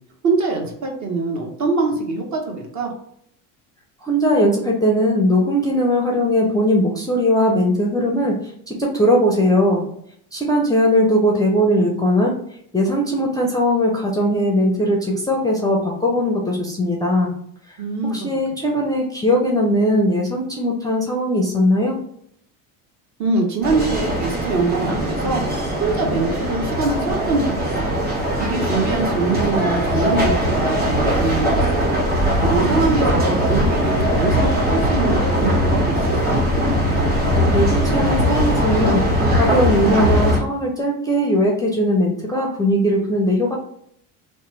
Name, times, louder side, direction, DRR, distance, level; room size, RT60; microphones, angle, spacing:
voice 1, 0.2-2.9 17.8-18.1 23.2-25.4 25.8-27.9 28.4-31.6 32.4-36.4, right 3 dB, 45° right, 1 dB, 0.9 m, -23 dB
voice 2, 4.0-9.9 10.3-12.4 12.7-17.3 17.7-17.8 18.1-22.0 37.5-39.0 39.3-43.6, equal, 10° left, -1 dB, 0.4 m, -19 dB
sound 1, 23.6-40.4, equal, 20° right, 1.2 m, -20 dB
3.0 x 2.1 x 3.1 m, 0.68 s
supercardioid pair, 100°, 41 cm